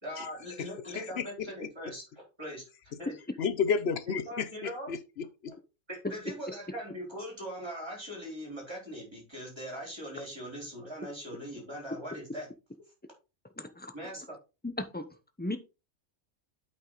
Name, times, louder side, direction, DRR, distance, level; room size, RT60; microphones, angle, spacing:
voice 1, 0.0-2.0 2.4-2.6 3.0-3.1 4.1-4.9 5.9-12.5 13.9-14.3, equal, 20° right, 4.2 m, -41 dB
voice 2, 3.4-4.5 4.9-5.5, left 6 dB, 60° left, 0.9 m, -31 dB
voice 3, 13.6-13.9 14.6-15.1 15.4-15.6, left 1 dB, 10° left, 0.7 m, -35 dB
8.5 x 5.4 x 4.0 m
omnidirectional pair, 1.3 m